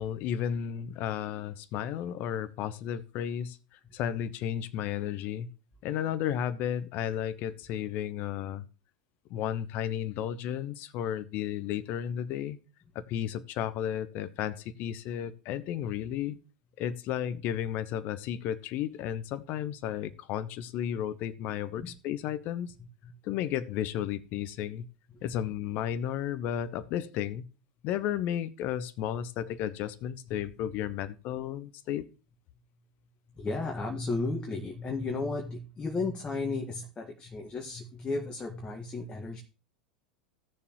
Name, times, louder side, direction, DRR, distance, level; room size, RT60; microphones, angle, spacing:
voice 1, 0.0-5.5 5.8-8.6 9.3-12.6 12.9-16.4 16.8-22.7 23.2-24.8 25.2-27.4 27.8-32.0, left 10 dB, 45° left, 16 dB, 1.0 m, -33 dB
voice 2, 22.8-23.1 30.3-30.4 33.3-39.4, left 3 dB, 20° left, 1 dB, 1.9 m, -34 dB
17.0 x 6.9 x 3.1 m, 0.33 s
figure-of-eight pair, 85°, 4 cm